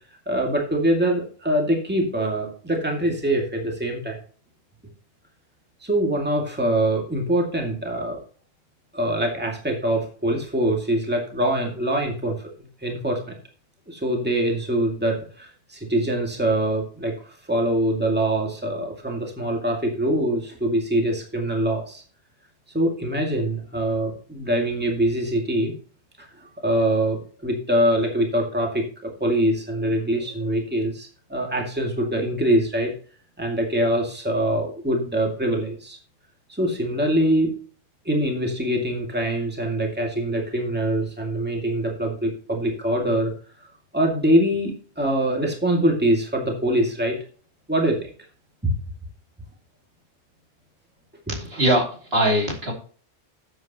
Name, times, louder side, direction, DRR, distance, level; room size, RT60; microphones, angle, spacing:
voice 1, 0.3-4.2 5.8-8.2 8.9-12.4 12.8-13.3 13.9-22.0 22.7-25.7 26.2-26.3 26.6-32.9 33.4-36.0 36.6-37.6 38.0-43.3 43.9-47.2 47.7-48.1 48.6-48.7 51.3-51.4, right 1 dB, 10° right, 1 dB, 2.3 m, -24 dB
voice 2, 51.3-52.7, right 1 dB, 60° right, 0 dB, 3.1 m, -22 dB
12.5 x 8.0 x 3.0 m, 0.42 s
omnidirectional pair, 1.1 m